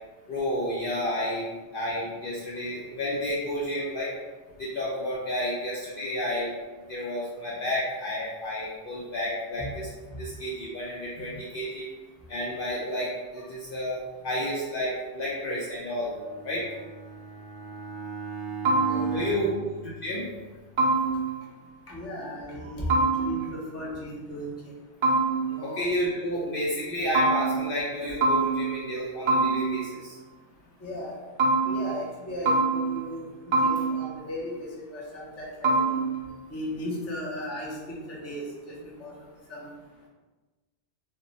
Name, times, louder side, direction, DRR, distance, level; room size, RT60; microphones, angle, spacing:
voice 1, 0.3-4.1 4.6-6.5 6.9-9.9 10.2-11.9 12.3-16.1 16.4-16.7 19.1-19.5 19.8-20.3 25.6-30.2, equal, 60° left, -6 dB, 0.6 m, -31 dB
Bowed string instrument, 16.0-20.6, right 5 dB, 65° right, 0.8 m, -38 dB
sound 1, 18.6-19.4 20.8-21.5 22.9-23.7 25.0-25.8 27.1-27.9 28.2-29.0 29.3-30.1 31.4-32.2 32.5-33.2 33.5-34.3 35.6-36.3, right 3 dB, 45° right, 0.3 m, -25 dB
voice 2, 18.8-19.4 21.9-24.7 25.5-25.8 30.8-31.2 31.6-33.3 33.6-36.0 36.5-38.5 39.0-39.1 39.5-39.7, left 1 dB, 20° left, -4 dB, 0.4 m, -36 dB
2.2 x 2.1 x 3.8 m, 1.2 s
omnidirectional pair, 1.1 m